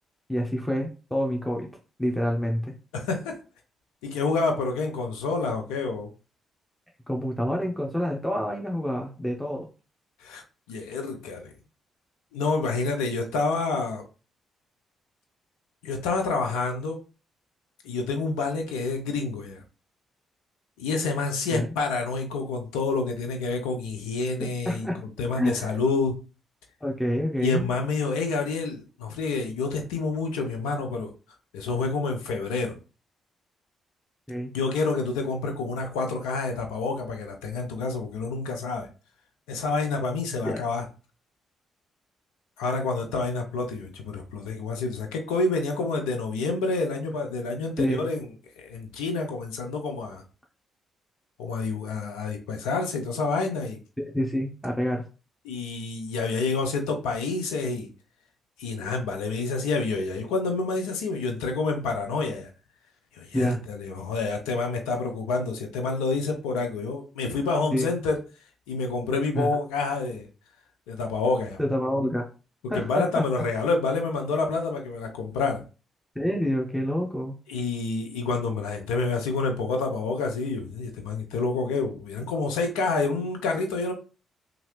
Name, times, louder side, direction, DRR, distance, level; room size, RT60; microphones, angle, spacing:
voice 1, 0.3-1.7 2.0-2.7 7.1-9.7 21.5-21.6 24.7-25.0 25.3-25.7 26.8-27.7 34.3-34.5 40.4-40.6 47.8-48.1 54.0-55.1 63.3-63.6 67.7-67.9 69.3-69.5 71.6-72.3 72.7-73.2 76.2-77.4, equal, 5° left, 0 dB, 0.7 m, -27 dB
voice 2, 2.9-3.4 4.0-6.1 10.2-10.4 10.7-11.5 12.3-14.0 15.8-17.0 17.8-19.6 20.8-24.9 25.2-26.2 27.4-31.1 31.5-32.7 34.5-38.9 39.5-40.8 42.6-50.2 51.4-53.8 55.4-57.9 58.6-62.5 63.1-68.2 68.7-70.3 70.9-71.6 72.7-75.6 77.5-83.9, left 3 dB, 80° left, 3 dB, 0.5 m, -28 dB
2.8 x 2.5 x 3.1 m, 0.34 s
hypercardioid pair, 40°, 0 cm